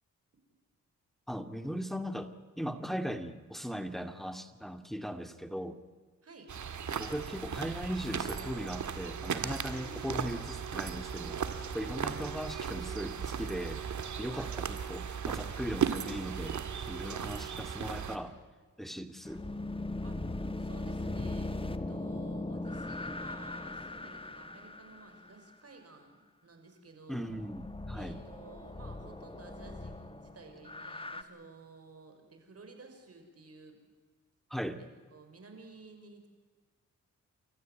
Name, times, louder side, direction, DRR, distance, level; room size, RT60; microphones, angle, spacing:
voice 1, 1.3-2.3 2.6-5.8 6.9-13.8 14.2-18.4 18.8-19.5 27.1-28.2 34.5-34.8, equal, ahead, 8 dB, 2.2 m, -38 dB
sound 1, 6.5-18.2, right 7 dB, 65° right, 2.1 m, -36 dB
voice 2, 9.7-10.3 11.8-12.3 14.3-14.6 20.0-27.4 27.9-33.8 34.8-36.3, right 3 dB, 50° right, 5 dB, 6.0 m, -53 dB
sound 2, 19.2-25.3 27.3-31.2, left 2 dB, 15° left, 1.6 m, -39 dB
30.0 x 14.0 x 9.5 m, 1.4 s
cardioid pair, 55°, 31 cm